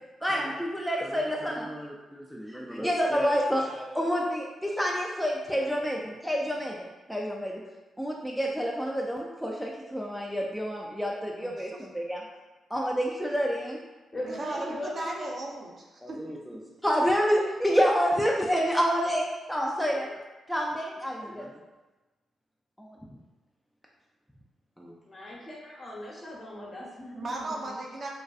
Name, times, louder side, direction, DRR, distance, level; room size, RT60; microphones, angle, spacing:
voice 1, 0.2-6.8 7.1-7.6 8.0-12.2 12.7-13.8 16.0-20.1 20.5-21.6 22.8-23.0 24.8-24.9, equal, ahead, -2 dB, 0.3 m, -28 dB
voice 2, 11.4-11.9 14.2-16.2 19.8-19.9 27.1-28.1, right 2 dB, 50° right, -2 dB, 0.6 m, -36 dB
voice 3, 14.1-15.3 25.0-27.5, left 1 dB, 35° left, -4 dB, 0.8 m, -39 dB
2.5 x 2.2 x 2.3 m, 1.1 s
hypercardioid pair, 45°, 0 cm